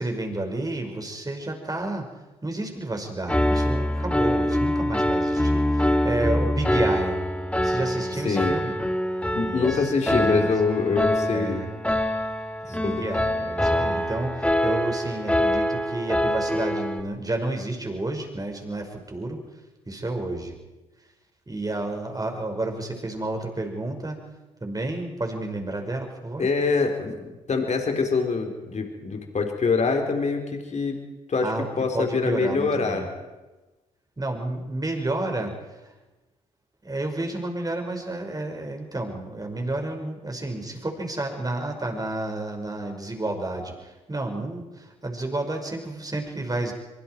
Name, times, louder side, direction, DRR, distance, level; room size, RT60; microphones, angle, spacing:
voice 1, 0.0-2.1 2.4-7.2 7.6-8.7 9.5-9.9 10.2-10.5 11.3-11.7 12.7-19.4 19.9-20.5 21.5-24.2 24.6-26.5 31.4-31.7 31.9-33.1 34.2-35.5 35.8-35.9 36.8-46.7, right 2 dB, 20° right, 3 dB, 5.4 m, -30 dB
Piano, 3.3-17.0, left 1 dB, 5° left, 2.7 m, -24 dB
voice 2, 8.2-8.6 9.3-11.6 12.7-13.1 26.4-31.0 31.3-33.1, left 4 dB, 45° left, 3 dB, 4.1 m, -25 dB
24.0 x 23.5 x 4.7 m, 1.1 s
hypercardioid pair, 45°, 16 cm